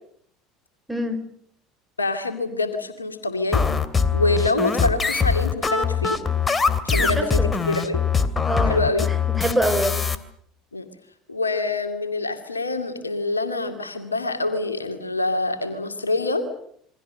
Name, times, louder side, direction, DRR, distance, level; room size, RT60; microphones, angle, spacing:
voice 1, 0.9-1.3 6.9-7.6 8.5-10.0, equal, 5° right, 7 dB, 6.0 m, -26 dB
voice 2, 2.0-3.6 4.1-6.2 6.8-7.4 7.7-8.0 8.7-9.1 10.7-10.9 11.3-16.5, left 2 dB, 90° left, 7 dB, 2.4 m, -25 dB
sound 1, 3.5-10.2, left 5 dB, 20° left, 2.8 m, -22 dB
28.5 x 23.5 x 6.6 m, 0.66 s
figure-of-eight pair, 65°, 0 cm